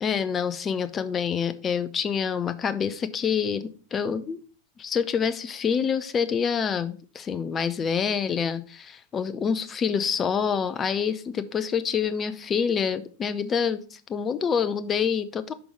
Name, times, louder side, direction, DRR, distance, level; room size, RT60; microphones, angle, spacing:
voice 1, 0.0-4.4 4.8-15.5, left 6 dB, 25° left, 13 dB, 0.5 m, -27 dB
6.1 x 5.3 x 4.8 m, 0.40 s
figure-of-eight pair, 90°, 0 cm